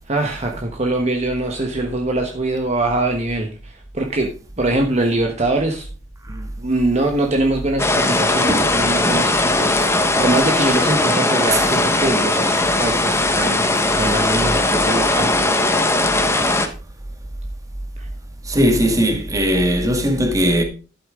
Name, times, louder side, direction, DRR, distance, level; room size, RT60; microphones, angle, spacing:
voice 1, 0.1-4.3 4.6-5.9 6.3-15.3 18.0-18.1, right 2 dB, 35° right, 1.2 m, -23 dB
sound 1, 7.8-16.7, left 2 dB, 15° left, 1.2 m, -18 dB
voice 2, 18.5-20.6, equal, 20° right, 1.9 m, -18 dB
11.5 x 8.7 x 3.7 m
head